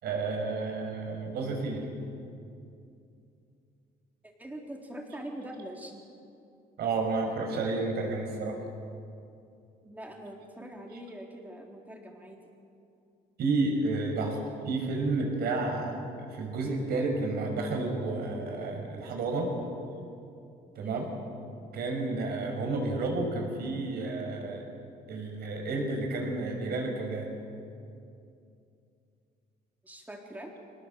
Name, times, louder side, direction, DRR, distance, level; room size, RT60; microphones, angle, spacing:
voice 1, 0.0-1.9 6.8-8.6 13.4-14.4 14.7-19.5 20.8-21.1 21.7-24.6 25.1-27.2, right 3 dB, 70° right, 2 dB, 6.1 m, -31 dB
voice 2, 4.2-6.0 9.8-12.4 20.8-21.1 29.8-30.5, right 1 dB, 10° right, 1 dB, 3.7 m, -43 dB
24.5 x 19.0 x 7.7 m, 2.6 s
cardioid pair, 110°, 17 cm